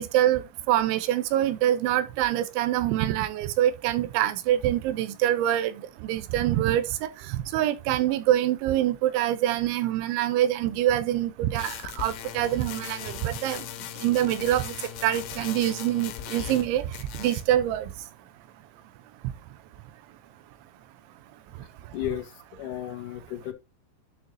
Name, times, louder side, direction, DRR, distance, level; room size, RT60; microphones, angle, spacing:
voice 1, 0.0-5.7 6.0-6.9 7.3-13.6 14.0-14.8 15.0-16.8 17.2-17.9, right 12 dB, 85° right, 3.2 m, -25 dB
sound 1, 11.6-16.7 16.9-17.5, left 11 dB, 85° left, 3.4 m, -38 dB
voice 2, 21.9-23.5, left 12 dB, 60° left, 2.4 m, -34 dB
11.0 x 6.6 x 2.8 m
omnidirectional pair, 5.4 m